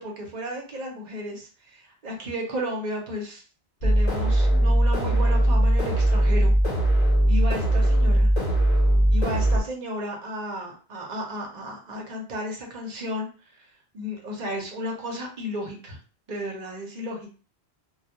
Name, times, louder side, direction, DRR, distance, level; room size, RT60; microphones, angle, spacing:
voice 1, 0.0-3.4 3.8-6.5 7.3-8.3 9.1-13.7 13.9-16.0 16.3-17.3, equal, 50° right, 0 dB, 0.7 m, -33 dB
sound 1, 3.8-9.6, right 1 dB, 50° left, 0.8 m, -20 dB
2.2 x 2.0 x 2.8 m, 0.37 s
omnidirectional pair, 1.1 m